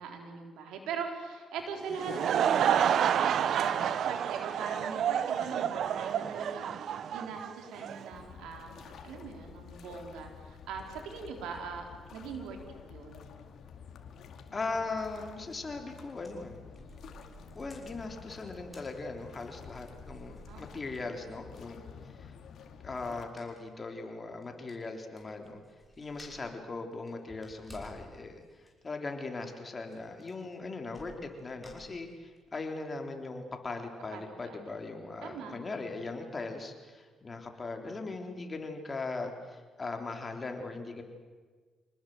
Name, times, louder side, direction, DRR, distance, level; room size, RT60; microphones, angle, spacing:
voice 1, 0.0-12.6 12.9-13.3 20.5-21.0 34.1-34.6 35.0-35.5, right 5 dB, 90° right, 3 dB, 4.0 m, -40 dB
Laughter / Crowd, 1.8-8.1, right 9 dB, 65° right, 0.7 m, -29 dB
sound 1, 8.1-23.3, left 7 dB, 65° left, 2.4 m, -50 dB
voice 2, 14.5-16.6 17.6-22.3 22.8-25.6 26.0-41.0, left 3 dB, 30° left, 4 dB, 3.5 m, -39 dB
sound 2, 16.1-21.2 21.6-21.7 23.4-23.7 24.0-24.1 24.4-24.5 24.7-26.6 26.9-28.1 28.4-28.7 29.9-30.0 30.2-30.5 30.9-32.4 32.8-32.9 33.2-33.3, equal, 5° left, 6.3 m, -54 dB
26.5 x 19.5 x 7.8 m, 1.4 s
cardioid pair, 90°, 0 cm